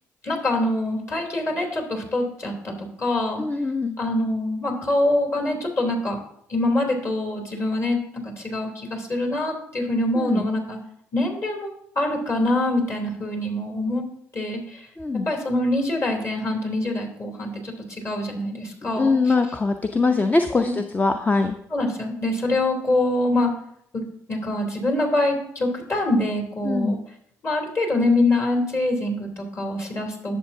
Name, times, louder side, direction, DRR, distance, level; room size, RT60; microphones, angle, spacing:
voice 1, 0.2-3.4 4.0-6.2 6.5-8.0 8.2-10.8 11.1-14.0 14.3-14.9 15.2-19.3 20.5-20.8 21.7-23.5 24.3-27.0 27.4-30.4, left 1 dB, 40° left, 0 dB, 3.1 m, -24 dB
voice 2, 3.4-4.0 10.2-10.5 15.0-15.3 19.0-21.5 26.6-26.9, left 3 dB, 25° left, 7 dB, 0.6 m, -22 dB
11.0 x 7.2 x 2.7 m, 0.69 s
hypercardioid pair, 60°, 7 cm